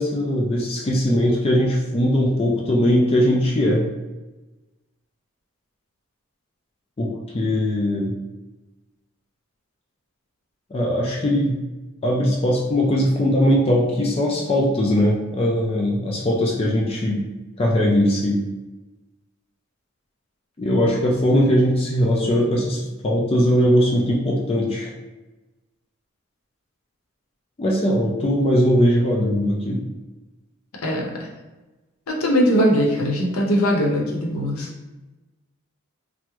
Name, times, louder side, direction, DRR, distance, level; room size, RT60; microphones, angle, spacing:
voice 1, 0.0-3.9 7.0-8.1 10.7-11.6 12.0-17.2 17.6-18.4 20.6-24.9 27.6-29.9, equal, 25° left, -2 dB, 0.3 m, -20 dB
voice 2, 30.8-31.3 32.1-34.7, equal, 85° left, -1 dB, 0.7 m, -20 dB
2.9 x 2.0 x 3.4 m, 1.1 s
head